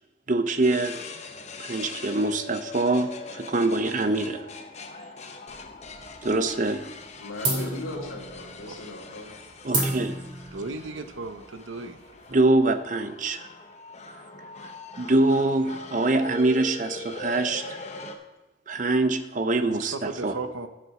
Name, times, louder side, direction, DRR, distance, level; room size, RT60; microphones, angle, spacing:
voice 1, 0.3-1.0 1.6-4.4 6.2-6.9 9.6-10.2 12.3-13.5 14.6-17.6 18.7-20.4, right 2 dB, 40° right, 10 dB, 0.6 m, -24 dB
sound 1, 0.6-18.1, left 3 dB, 35° left, 0.8 m, -41 dB
sound 2, 5.5-6.4 6.7-7.1 7.4-12.6, right 2 dB, 25° right, 2.2 m, -32 dB
voice 2, 7.2-9.3, left 2 dB, 85° left, -2 dB, 2.7 m, -37 dB
voice 3, 10.5-12.0 19.7-20.7, right 3 dB, 80° right, 9 dB, 0.9 m, -35 dB
11.0 x 8.0 x 4.9 m, 1.1 s
head